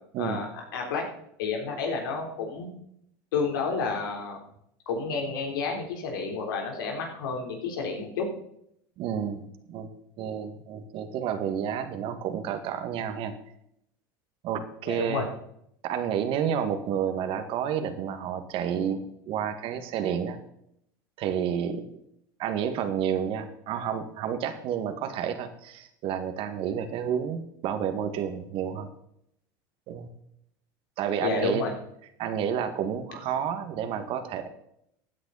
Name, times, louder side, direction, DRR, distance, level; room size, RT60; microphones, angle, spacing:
voice 1, 0.2-1.1 1.4-2.7 3.3-4.4 4.9-8.3 14.9-15.3 31.2-31.7, left 4 dB, 90° left, 2 dB, 3.7 m, -30 dB
voice 2, 9.0-9.9 10.2-13.3 14.4-15.3 15.8-19.0 19.3-20.4 21.2-21.8 22.4-28.9 29.9-30.1 31.0-31.6 32.2-34.5, right 8 dB, 55° right, 8 dB, 1.9 m, -30 dB
15.5 x 9.6 x 4.2 m, 0.74 s
supercardioid pair, 105°, 11 cm